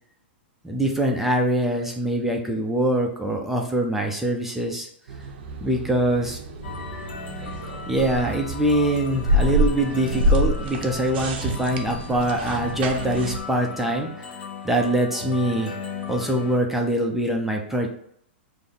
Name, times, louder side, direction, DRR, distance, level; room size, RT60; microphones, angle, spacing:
voice 1, 0.6-4.9 5.6-6.4 7.9-14.3 14.6-15.7 16.1-17.9, right 1 dB, 5° right, 1 dB, 0.5 m, -23 dB
sound 1, 5.1-13.4, equal, 60° right, 0.7 m, -27 dB
sound 2, 6.6-16.6, left 4 dB, 70° left, 1.1 m, -36 dB
5.1 x 2.0 x 3.8 m, 0.68 s
hypercardioid pair, 140°, 6 cm